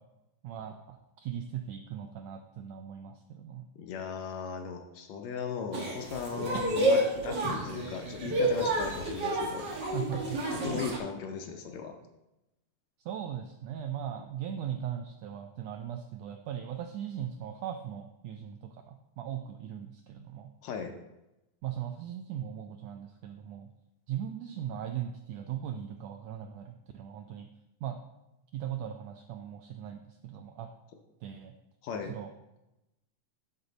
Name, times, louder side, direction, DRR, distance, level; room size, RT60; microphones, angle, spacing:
voice 1, 0.4-3.7 9.9-10.4 13.0-20.5 21.6-23.7 24.1-27.5 27.8-28.0 28.5-30.7 31.2-31.5 32.1-32.3, right 9 dB, 85° right, 6 dB, 1.5 m, -39 dB
voice 2, 3.8-9.7 10.5-12.0 20.6-20.9 31.8-32.1, left 5 dB, 75° left, 4 dB, 1.8 m, -37 dB
sound 1, 5.7-11.0, right 1 dB, 50° right, 1.5 m, -30 dB
12.5 x 4.2 x 3.9 m, 0.94 s
omnidirectional pair, 3.5 m